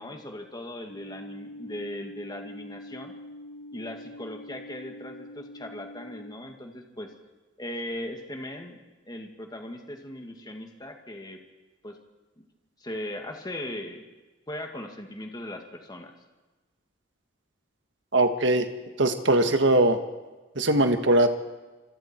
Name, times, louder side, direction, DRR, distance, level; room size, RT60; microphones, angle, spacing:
voice 1, 0.0-3.1 3.7-7.1 7.6-11.4 11.8-12.0 12.4-12.5 12.8-14.1 14.5-16.1, left 1 dB, 20° left, 3 dB, 2.1 m, -38 dB
sound 1, 0.9-6.3, left 1 dB, 85° left, 5.7 m, -44 dB
voice 2, 18.1-18.7 19.0-20.0 20.6-21.3, right 2 dB, 65° right, 7 dB, 1.6 m, -21 dB
26.5 x 26.0 x 4.5 m, 1.2 s
head